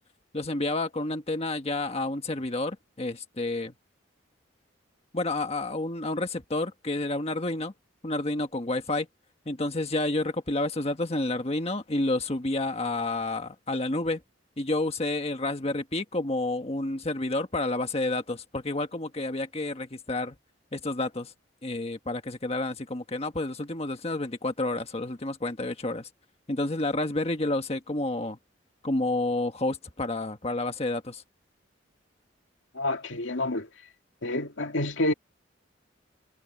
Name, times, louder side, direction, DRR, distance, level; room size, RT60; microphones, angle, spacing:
voice 1, 0.3-3.7 5.1-7.7 8.0-9.1 9.4-14.2 14.6-20.3 20.7-21.3 21.6-26.1 26.5-28.4 28.8-31.2, left 2 dB, 35° left, 1.4 m, -30 dB
voice 2, 32.7-33.7 34.2-35.1, left 2 dB, 85° left, 2.3 m, -28 dB
head